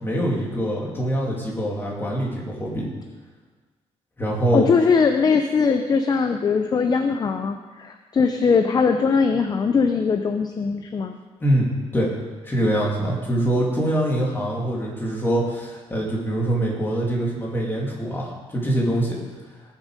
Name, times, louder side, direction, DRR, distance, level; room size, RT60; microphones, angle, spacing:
voice 1, 0.0-2.9 4.2-4.7 11.4-12.1 12.4-19.2, right 1 dB, 20° left, -3 dB, 3.1 m, -24 dB
voice 2, 4.5-11.2, left 5 dB, 35° left, 6 dB, 0.7 m, -20 dB
18.0 x 7.4 x 5.1 m, 1.3 s
cardioid pair, 145°, 12 cm